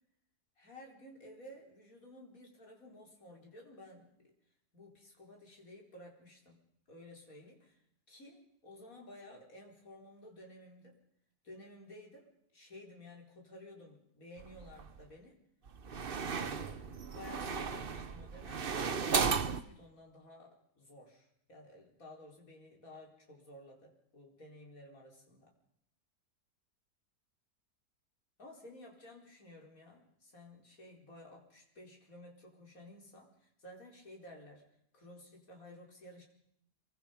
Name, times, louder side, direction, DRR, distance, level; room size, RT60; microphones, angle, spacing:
voice 1, 0.6-4.1 4.7-6.6 6.9-7.8 8.1-11.0 11.4-15.4 16.2-25.5 28.4-34.6 34.9-36.2, left 1 dB, 60° left, 0 dB, 5.0 m, -54 dB
sound 1, 14.4-15.0 15.7-19.6, right 5 dB, 40° right, 1.1 m, -35 dB
27.0 x 23.5 x 5.3 m, 0.74 s
omnidirectional pair, 1.7 m